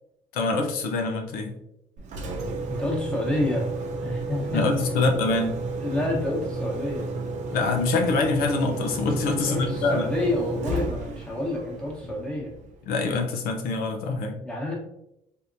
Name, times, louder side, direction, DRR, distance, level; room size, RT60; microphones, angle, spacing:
voice 1, 0.3-1.5 4.5-5.6 7.5-10.1 12.9-14.4, left 3 dB, 80° left, 3 dB, 0.6 m, -25 dB
Engine, 2.0-12.9, right 3 dB, 50° right, 0.6 m, -32 dB
voice 2, 2.7-3.7 4.0-4.8 5.8-7.1 9.4-12.5 14.4-14.7, left 1 dB, 5° left, -3 dB, 1.0 m, -28 dB
3.5 x 2.8 x 2.6 m, 0.80 s
cardioid pair, 135°, 15 cm